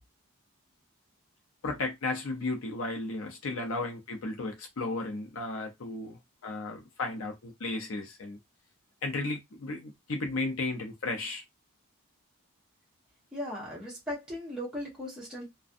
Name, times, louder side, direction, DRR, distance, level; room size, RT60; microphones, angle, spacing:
voice 1, 1.6-8.4 9.0-11.4, left 2 dB, 70° left, 0.6 m, -34 dB
voice 2, 13.3-15.5, left 1 dB, 5° right, 0.8 m, -37 dB
2.4 x 2.2 x 2.5 m
head